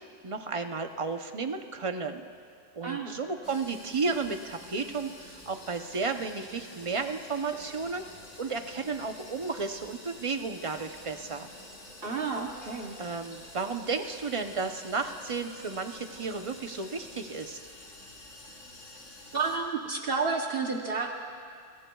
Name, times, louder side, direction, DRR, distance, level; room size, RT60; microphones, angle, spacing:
voice 1, 0.2-2.3 2.7-8.0 8.4-11.5 13.0-17.6, right 4 dB, 35° right, 6 dB, 0.6 m, -33 dB
voice 2, 2.8-3.1 12.0-13.0 19.3-21.1, right 4 dB, 50° right, 2 dB, 1.1 m, -30 dB
sound 1, 3.4-19.6, left 1 dB, 75° left, 2.5 m, -48 dB
26.0 x 21.5 x 2.3 m, 2.2 s
omnidirectional pair, 1.3 m